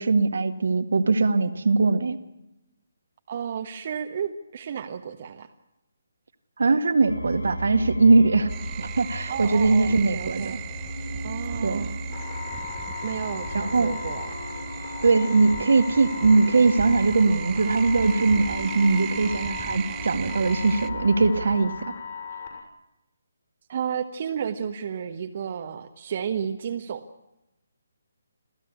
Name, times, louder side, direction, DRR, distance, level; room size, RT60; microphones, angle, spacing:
voice 1, 0.0-2.2 6.6-8.5 8.8-10.6 11.6-11.9 13.5-13.9 15.0-21.9, right 3 dB, 60° right, 8 dB, 1.8 m, -21 dB
voice 2, 3.3-5.5 9.3-10.6 11.2-12.0 13.0-14.3 23.7-27.0, right 7 dB, 40° right, 5 dB, 1.3 m, -32 dB
sound 1, 7.0-21.6, equal, 85° left, 4.0 m, -36 dB
sound 2, 8.5-20.9, right 17 dB, 20° right, 0.7 m, -38 dB
sound 3, 12.1-22.6, left 6 dB, 45° left, 6.7 m, -38 dB
27.0 x 16.0 x 8.4 m, 0.91 s
figure-of-eight pair, 140°, 0 cm